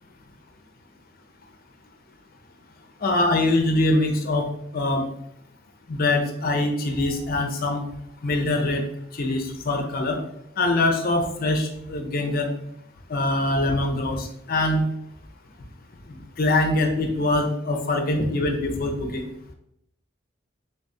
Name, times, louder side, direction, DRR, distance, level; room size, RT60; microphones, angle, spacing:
voice 1, 3.0-4.5 4.7-5.0 5.9-7.8 8.2-8.8 9.2-10.2 10.6-12.5 13.1-14.8 16.4-19.2, left 2 dB, 50° left, 5 dB, 0.5 m, -23 dB
3.3 x 2.4 x 4.1 m, 0.75 s
head